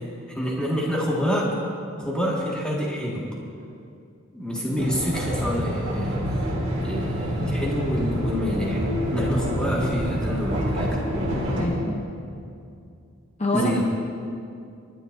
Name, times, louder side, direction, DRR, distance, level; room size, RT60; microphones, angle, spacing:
voice 1, 0.3-1.6 2.0-3.2 4.3-6.2 6.8-8.8 9.1-11.0 11.3-11.4 13.5-13.8, equal, 5° left, -4 dB, 1.8 m, -27 dB
sound 1, 4.8-11.7, equal, 30° right, 2.5 m, -27 dB
voice 2, 11.6-12.1 13.4-13.8, left 1 dB, 35° left, 0 dB, 0.8 m, -27 dB
25.0 x 10.5 x 2.7 m, 2.5 s
head